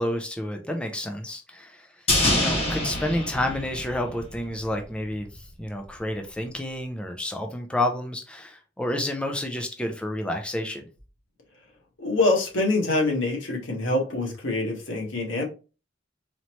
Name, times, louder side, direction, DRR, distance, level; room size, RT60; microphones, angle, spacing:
voice 1, 0.0-2.1 2.3-10.9, left 1 dB, 5° left, 3 dB, 0.5 m, -30 dB
sound 1, 2.1-4.5 4.7-4.8, left 1 dB, 35° left, 1.8 m, -25 dB
voice 2, 12.0-15.5, left 2 dB, 80° left, -1 dB, 1.5 m, -25 dB
4.1 x 3.1 x 3.0 m, 0.33 s
head